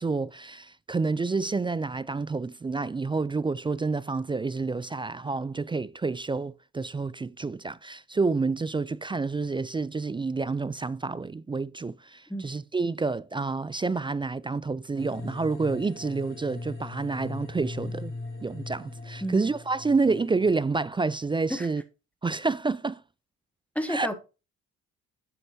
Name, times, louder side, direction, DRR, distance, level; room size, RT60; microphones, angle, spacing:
voice 1, 0.0-18.1 18.4-21.8 22.2-23.0 23.9-24.1, right 4 dB, 15° right, 0.3 m, -29 dB
sound 1, 15.0-20.5, left 2 dB, 40° left, 3.9 m, -39 dB
voice 2, 23.7-24.1, equal, 5° left, 1.5 m, -30 dB
7.8 x 6.5 x 2.7 m
cardioid pair, 90°, 30 cm